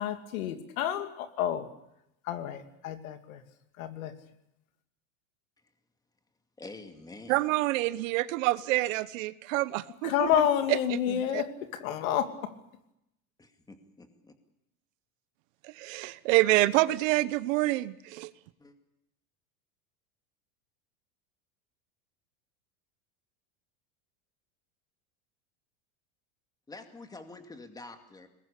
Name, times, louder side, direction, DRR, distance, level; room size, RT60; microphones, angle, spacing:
voice 1, 0.0-1.7 2.2-3.4 3.8-4.1 10.0-12.5, left 10 dB, 80° left, 8 dB, 2.8 m, -29 dB
voice 2, 6.6-7.4 13.4-14.3 18.6-18.7 26.7-28.3, left 3 dB, 10° left, 7 dB, 2.4 m, -47 dB
voice 3, 7.3-10.5 11.1-11.4 15.6-18.3, right 18 dB, 65° right, 16 dB, 1.1 m, -27 dB
23.0 x 20.5 x 8.5 m, 0.82 s
supercardioid pair, 150°, 41 cm